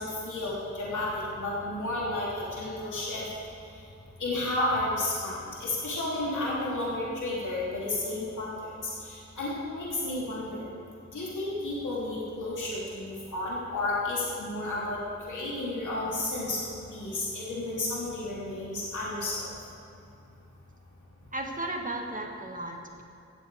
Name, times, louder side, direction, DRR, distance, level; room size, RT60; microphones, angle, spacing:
voice 1, 0.0-3.2 4.2-10.7 11.1-15.0 15.3-16.6 16.9-19.5, left 2 dB, 85° left, -7 dB, 3.0 m, -32 dB
voice 2, 21.3-23.0, right 2 dB, 25° right, 2 dB, 1.7 m, -35 dB
17.5 x 7.5 x 4.9 m, 2.6 s
cardioid pair, 65°, 30 cm